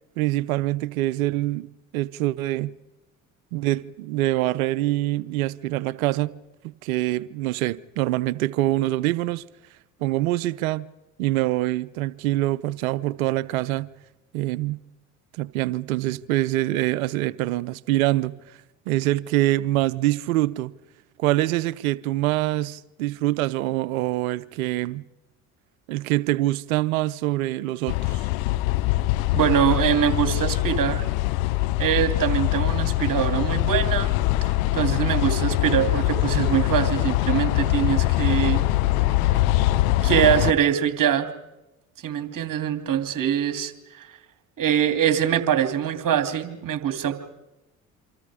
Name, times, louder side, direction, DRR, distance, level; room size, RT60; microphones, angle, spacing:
voice 1, 0.2-1.7 1.9-2.7 3.5-6.4 6.6-9.4 10.0-10.9 11.2-13.9 14.3-14.8 15.3-18.4 18.9-20.7 21.2-25.0 25.9-28.3, right 16 dB, 80° right, 0.7 m, -25 dB
sound 1, 27.9-40.5, left 17 dB, 75° left, 0.9 m, -23 dB
voice 2, 29.3-31.1 31.8-34.1 34.7-38.6 40.0-41.3 42.0-43.7 44.6-47.1, right 9 dB, 50° right, 2.8 m, -23 dB
27.5 x 25.5 x 5.0 m
hypercardioid pair, 60°, 41 cm